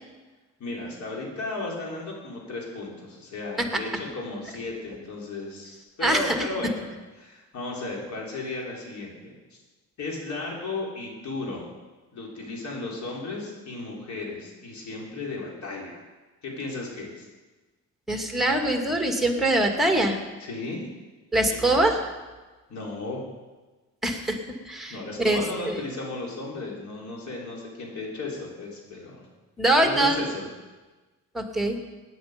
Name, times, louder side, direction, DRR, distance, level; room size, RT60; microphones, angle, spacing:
voice 1, 0.6-6.9 7.2-9.3 10.0-11.7 12.1-16.0 16.4-17.3 20.4-20.9 21.7-21.8 22.7-23.2 24.9-29.3 29.8-30.5, left 2 dB, 70° left, -2 dB, 4.4 m, -34 dB
voice 2, 6.0-6.4 18.1-20.2 21.3-22.0 24.0-24.4 24.7-25.4 25.7-25.8 29.6-30.2 31.3-31.8, right 1 dB, ahead, 3 dB, 2.3 m, -23 dB
17.5 x 9.4 x 5.2 m, 1.2 s
cardioid pair, 90°, 30 cm